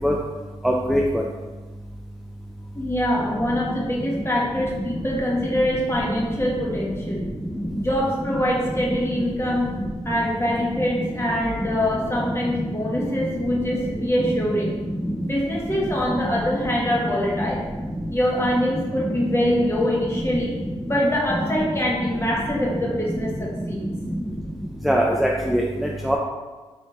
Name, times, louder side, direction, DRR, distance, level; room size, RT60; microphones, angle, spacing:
voice 1, 0.6-1.0 24.8-26.2, equal, ahead, -2 dB, 0.4 m, -21 dB
voice 2, 2.7-7.2 7.8-9.7 10.0-14.8 15.3-17.6 18.1-20.5 20.9-23.9, equal, 25° left, -4 dB, 1.2 m, -24 dB
4.2 x 3.2 x 3.1 m, 1.3 s
cardioid pair, 60°, 11 cm